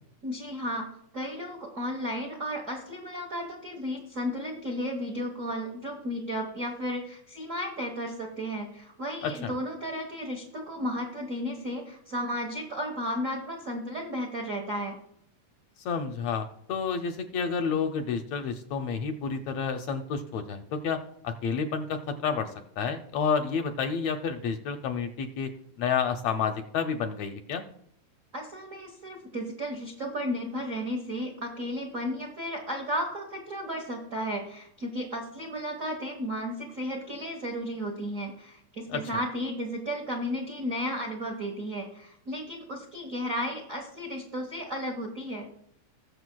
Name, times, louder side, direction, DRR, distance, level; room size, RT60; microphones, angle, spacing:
voice 1, 0.2-0.9 1.1-15.0 28.3-45.5, equal, 85° right, 2 dB, 0.7 m, -34 dB
voice 2, 9.2-9.5 15.8-25.5 25.8-27.6 38.9-39.0, left 6 dB, 75° left, 6 dB, 1.6 m, -30 dB
20.0 x 6.7 x 2.2 m, 0.69 s
omnidirectional pair, 3.4 m